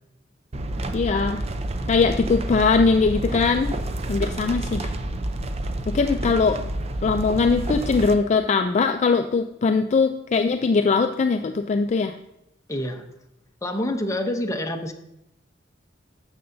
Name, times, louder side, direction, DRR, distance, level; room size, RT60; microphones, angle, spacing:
sound 1, 0.5-8.1, right 1 dB, 35° right, 0.5 m, -29 dB
voice 1, 0.9-1.4 1.9-3.7 4.1-4.9 5.9-6.7 7.0-12.1, left 4 dB, 40° left, 7 dB, 0.3 m, -21 dB
voice 2, 12.7-13.0 13.6-14.9, left 1 dB, 15° left, 4 dB, 0.7 m, -27 dB
12.0 x 6.7 x 2.6 m, 0.83 s
head